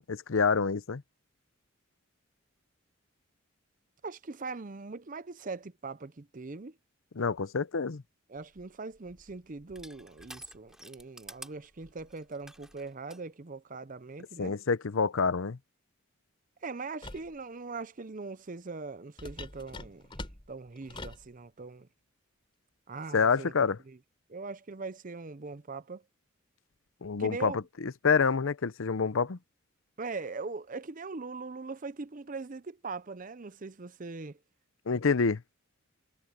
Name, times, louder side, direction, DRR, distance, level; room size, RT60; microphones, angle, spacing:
voice 1, 0.1-1.0 7.2-8.0 14.4-15.6 23.1-23.8 27.0-29.4 34.9-35.4, left 5 dB, 70° left, 0.6 m, -27 dB
voice 2, 4.0-6.8 8.3-14.6 16.6-20.1 20.5-21.9 22.9-23.5 23.9-24.0 24.3-26.0 27.2-27.6 30.0-34.4, right 4 dB, 40° right, 0.6 m, -41 dB
Crushing, 8.5-13.2, right 1 dB, ahead, 6.4 m, -51 dB
sound 1, 17.0-17.3 19.2-21.3, left 2 dB, 25° left, 3.6 m, -43 dB
head